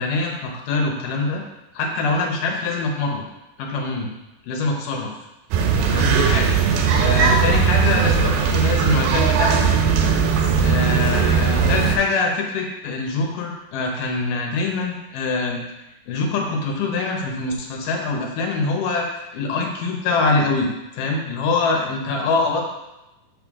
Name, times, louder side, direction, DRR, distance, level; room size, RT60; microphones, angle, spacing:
voice 1, 0.0-1.4 1.8-3.2 3.6-4.1 4.5-5.1 5.9-6.6 7.0-9.7 10.6-15.6 16.1-19.1 19.3-22.7, left 3 dB, 75° left, 0 dB, 2.5 m, -24 dB
sound 1, 5.5-12.0, right 6 dB, 90° right, 2.4 m, -18 dB
5.7 x 5.6 x 3.6 m, 0.96 s
omnidirectional pair, 4.1 m